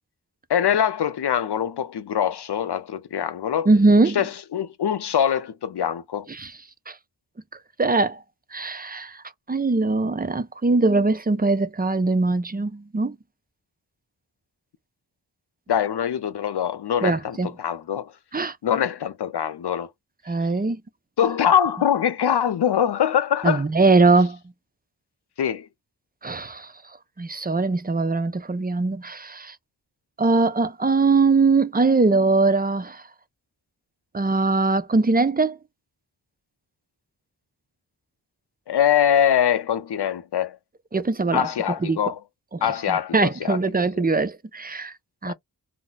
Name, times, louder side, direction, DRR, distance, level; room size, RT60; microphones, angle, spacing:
voice 1, 0.5-3.7 4.1-6.3 15.7-18.1 18.6-19.9 21.2-23.6 25.4-25.7 38.7-40.6 41.3-42.2 42.6-43.6 45.2-45.3, left 9 dB, 80° left, 0.5 m, -23 dB
voice 2, 3.7-4.2 6.3-6.5 6.9-7.0 7.8-8.2 8.5-13.2 17.0-17.5 18.3-18.6 20.3-20.8 23.4-24.4 26.2-26.7 27.2-29.6 30.2-33.0 34.1-35.6 40.9-41.5 41.8-42.0 42.5-44.9 45.2-45.3, right 3 dB, 25° right, 0.4 m, -21 dB
2.3 x 2.1 x 3.8 m
wide cardioid pair, 55°, 39 cm